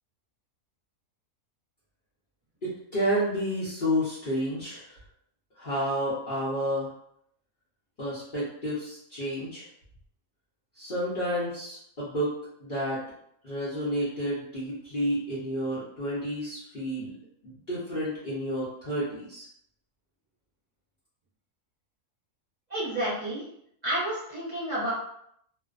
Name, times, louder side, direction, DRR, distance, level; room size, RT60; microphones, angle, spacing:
voice 1, 2.6-4.9 5.6-6.9 8.0-9.7 10.8-13.0 13.4-17.2 17.4-19.5, equal, 45° left, -10 dB, 0.7 m, -30 dB
voice 2, 22.7-23.4 23.8-24.9, right 1 dB, 35° right, -10 dB, 1.1 m, -30 dB
2.6 x 2.1 x 2.4 m, 0.71 s
omnidirectional pair, 1.5 m